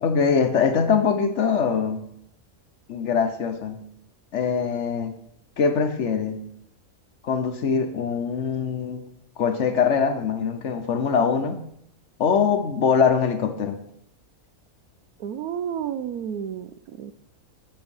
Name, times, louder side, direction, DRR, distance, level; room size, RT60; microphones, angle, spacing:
voice 1, 0.0-2.0 2.9-3.8 4.3-5.1 5.6-6.4 7.2-9.0 9.4-11.6 12.2-13.8, left 6 dB, 60° left, 8 dB, 1.1 m, -23 dB
voice 2, 15.2-16.7 17.0-17.1, right 9 dB, 85° right, 13 dB, 1.1 m, -30 dB
7.8 x 7.6 x 5.4 m, 0.72 s
omnidirectional pair, 1.5 m